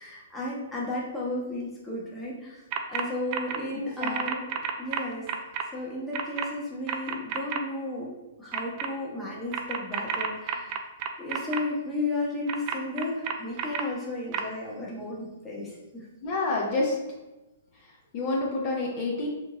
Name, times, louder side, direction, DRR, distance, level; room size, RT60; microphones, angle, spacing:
voice 1, 0.0-4.4 4.8-5.3 5.7-10.8 11.2-16.1, left 2 dB, 10° left, -5 dB, 0.9 m, -34 dB
sound 1, 2.7-3.0 3.3-3.6 4.0-5.6 6.1-6.5 6.9-7.6 8.5-8.9 9.5-11.6 12.5-13.8 14.3-14.4, right 8 dB, 40° right, 0.3 m, -30 dB
voice 2, 4.0-4.5 16.2-16.9 18.1-19.3, left 2 dB, 35° left, -3 dB, 0.6 m, -28 dB
3.6 x 2.9 x 2.4 m, 1.1 s
hypercardioid pair, 140°, 0 cm